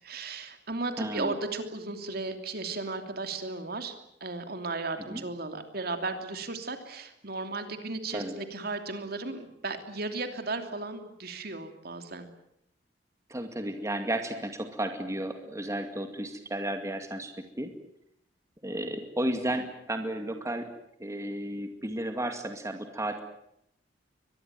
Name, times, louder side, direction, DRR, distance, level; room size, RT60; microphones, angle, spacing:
voice 1, 0.0-3.9 4.2-12.3, right 3 dB, 55° right, 7 dB, 3.0 m, -35 dB
voice 2, 1.0-1.4 5.1-5.2 8.1-8.3 13.3-17.7 18.6-20.7 21.0-23.2, right 1 dB, 15° right, 6 dB, 2.3 m, -33 dB
23.5 x 21.0 x 9.3 m, 0.76 s
head